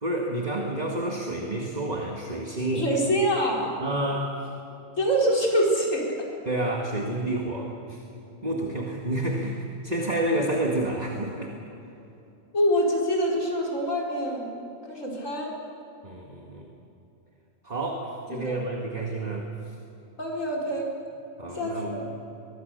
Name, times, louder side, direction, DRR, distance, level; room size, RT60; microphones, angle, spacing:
voice 1, 0.0-2.9 3.8-4.3 6.5-8.0 8.4-9.6 9.8-11.5 16.0-16.7 17.6-19.5 21.4-22.0, right 1 dB, 30° right, 0 dB, 2.1 m, -29 dB
voice 2, 2.8-3.7 5.0-6.1 12.5-14.5 14.9-15.5 18.3-18.6 20.2-20.9 21.5-22.1, equal, 65° left, -2 dB, 5.0 m, -25 dB
23.5 x 22.0 x 6.8 m, 2.9 s
omnidirectional pair, 1.4 m